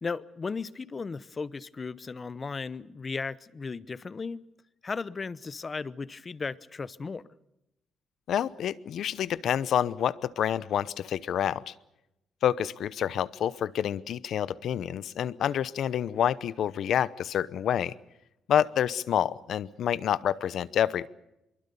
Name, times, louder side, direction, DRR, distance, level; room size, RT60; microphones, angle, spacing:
voice 1, 0.0-4.4 4.8-7.2, left 4 dB, 30° left, 0.8 m, -36 dB
voice 2, 8.3-11.7 12.4-17.9 18.5-21.1, left 9 dB, 65° left, 0.8 m, -28 dB
25.0 x 22.5 x 6.9 m
cardioid pair, 125°, 0 cm